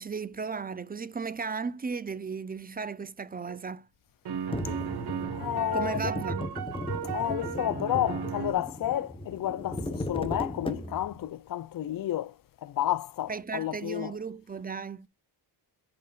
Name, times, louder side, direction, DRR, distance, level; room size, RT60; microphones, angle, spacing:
voice 1, 0.0-3.9 5.7-6.6 13.3-15.1, right 5 dB, 20° right, 0.4 m, -35 dB
sound 1, 3.5-3.6 4.3-8.5, right 8 dB, 65° right, 1.4 m, -35 dB
sound 2, 4.5-11.2, left 1 dB, 15° left, 1.0 m, -36 dB
voice 2, 5.3-6.1 7.0-14.2, left 12 dB, 55° left, 0.5 m, -31 dB
7.7 x 5.1 x 2.4 m
cardioid pair, 110°, 42 cm